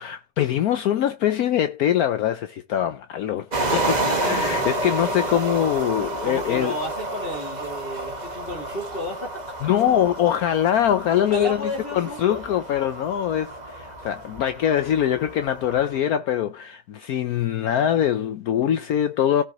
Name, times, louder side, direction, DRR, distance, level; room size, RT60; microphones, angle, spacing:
voice 1, 0.0-6.8 9.6-19.4, left 10 dB, 70° left, 1.2 m, -23 dB
sound 1, 3.5-16.0, right 2 dB, 25° right, 1.6 m, -30 dB
voice 2, 4.0-4.7 6.2-9.6 11.3-12.4, equal, 35° left, 2.7 m, -32 dB
17.5 x 5.9 x 3.0 m
omnidirectional pair, 1.7 m